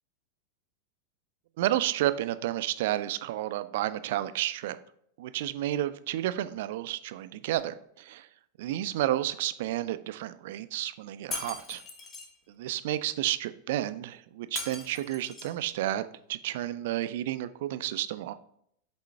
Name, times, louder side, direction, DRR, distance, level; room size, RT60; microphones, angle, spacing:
voice 1, 1.6-4.8 5.2-8.3 8.6-11.8 12.5-18.3, right 13 dB, 55° right, 13 dB, 0.3 m, -31 dB
Shatter, 11.3-12.3 14.6-15.6, left 3 dB, 30° left, 1.2 m, -39 dB
8.3 x 3.7 x 3.3 m, 0.70 s
figure-of-eight pair, 90°, 0 cm